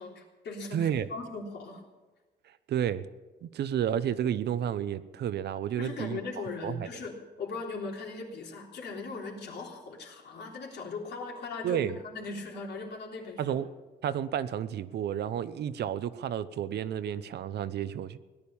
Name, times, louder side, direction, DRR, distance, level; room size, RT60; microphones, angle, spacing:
voice 1, 0.0-1.9 5.8-13.6, left 3 dB, 70° left, 0 dB, 3.5 m, -39 dB
voice 2, 0.7-1.1 2.4-3.1 3.4-6.2 6.6-6.9 11.6-12.0 13.4-13.7 14.0-18.2, right 9 dB, 70° right, 13 dB, 0.8 m, -31 dB
17.5 x 11.5 x 7.1 m, 1.2 s
cardioid pair, 145°, 18 cm